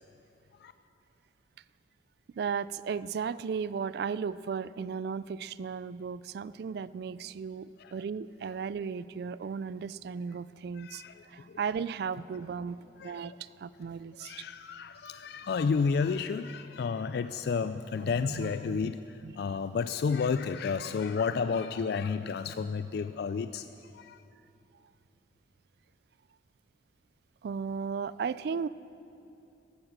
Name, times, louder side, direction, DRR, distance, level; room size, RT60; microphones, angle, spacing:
voice 1, 2.3-14.4 17.0-17.1 18.0-18.9 19.2-19.3 27.4-28.7, right 6 dB, 60° right, 18 dB, 0.3 m, -36 dB
voice 2, 10.8-11.6 13.0-13.4 14.2-23.7 23.9-24.2, left 5 dB, 60° left, 11 dB, 0.3 m, -31 dB
15.0 x 11.0 x 6.5 m, 2.7 s
head